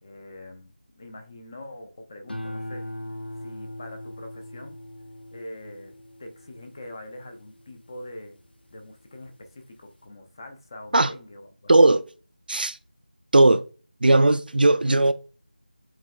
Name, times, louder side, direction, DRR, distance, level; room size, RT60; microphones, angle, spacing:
voice 1, 0.0-2.8 3.4-4.8 5.3-5.9 6.2-8.4 8.7-11.7, left 1 dB, 25° left, 0.6 m, -43 dB
sound 1, 2.3-8.8 9.3-9.8, left 1 dB, 85° left, 0.6 m, -40 dB
voice 2, 11.7-12.0 12.5-12.8 13.3-13.6 14.0-15.1, right 2 dB, 65° right, 0.4 m, -17 dB
7.3 x 3.1 x 2.3 m
figure-of-eight pair, 170°, 5 cm